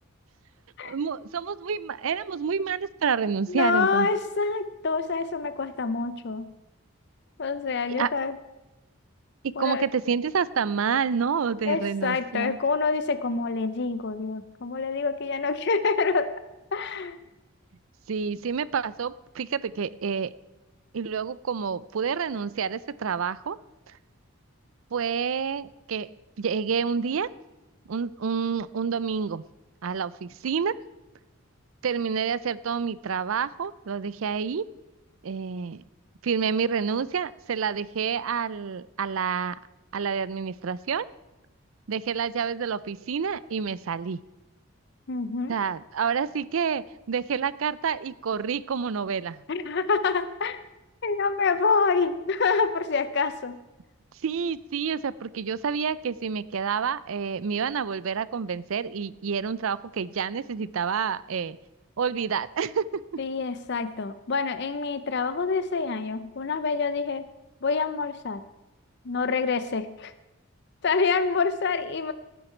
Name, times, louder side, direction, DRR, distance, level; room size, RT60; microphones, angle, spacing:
voice 1, 0.8-4.1 7.9-8.1 9.4-12.6 18.1-20.3 20.9-23.6 24.9-26.1 26.4-27.3 27.9-29.4 29.8-30.8 31.8-34.6 35.2-35.8 36.2-39.6 39.9-41.1 41.9-44.2 45.5-49.4 54.2-61.6 62.0-63.0, right 6 dB, 75° right, 19 dB, 0.5 m, -28 dB
voice 2, 3.5-6.4 7.4-8.4 9.6-9.9 11.7-16.3 16.7-17.2 45.1-45.5 49.5-50.6 51.0-53.6 63.2-67.2 67.6-68.4 69.0-70.1 70.8-72.1, left 4 dB, 55° left, 12 dB, 0.6 m, -26 dB
17.5 x 9.4 x 4.4 m, 1.0 s
head